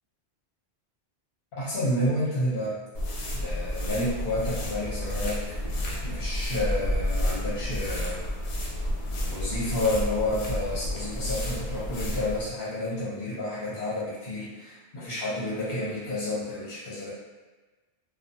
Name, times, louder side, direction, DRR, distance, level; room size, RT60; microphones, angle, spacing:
voice 1, 1.6-2.8 3.3-5.5 6.0-8.2 9.3-17.1, left 1 dB, 65° left, -9 dB, 1.0 m, -30 dB
sound 1, 2.9-12.5, left 1 dB, 90° left, 0.8 m, -31 dB
2.4 x 2.4 x 2.6 m, 1.2 s
omnidirectional pair, 1.1 m